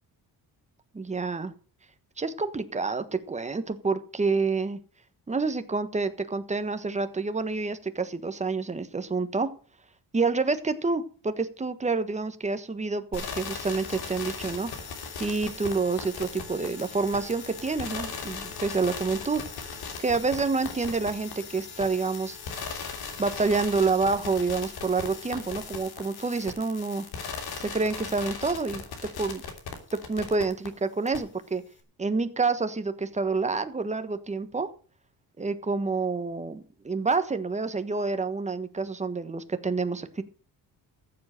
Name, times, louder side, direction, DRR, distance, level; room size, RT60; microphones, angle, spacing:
voice 1, 0.9-1.5 2.2-4.8 5.3-9.5 10.1-14.7 15.2-19.4 20.0-22.4 23.2-27.1 27.6-28.8 29.2-29.4 30.1-31.6 32.0-34.7 35.4-40.2, right 4 dB, 20° right, 10 dB, 1.4 m, -28 dB
sound 1, 13.1-30.7 31.1-31.2, left 5 dB, 80° left, 3.1 m, -38 dB
14.5 x 7.7 x 6.6 m, 0.39 s
cardioid pair, 135°, 37 cm